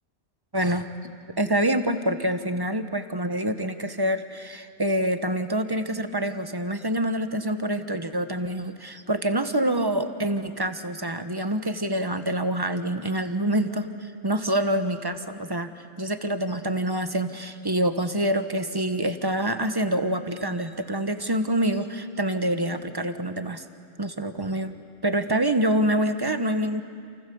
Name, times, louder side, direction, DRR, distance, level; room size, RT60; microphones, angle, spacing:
voice 1, 0.5-1.1 1.4-23.6 24.0-24.8 25.0-26.8, right 1 dB, 20° right, 9 dB, 1.2 m, -26 dB
29.0 x 28.5 x 7.0 m, 2.4 s
omnidirectional pair, 1.2 m